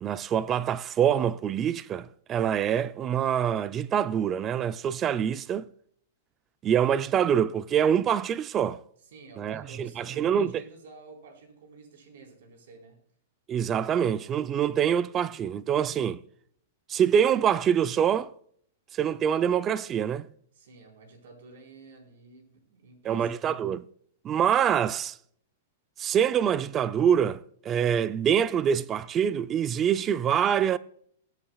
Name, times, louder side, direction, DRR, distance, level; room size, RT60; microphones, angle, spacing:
voice 1, 0.0-5.7 6.6-8.8 9.4-10.6 13.5-16.2 16.9-18.3 18.9-20.3 23.0-23.8 24.2-25.2 26.0-30.8, right 8 dB, 20° right, 0.4 m, -25 dB
voice 2, 9.0-13.0 20.5-23.6, right 3 dB, 70° right, 4.2 m, -50 dB
21.5 x 8.5 x 2.3 m
hypercardioid pair, 150°, 0 cm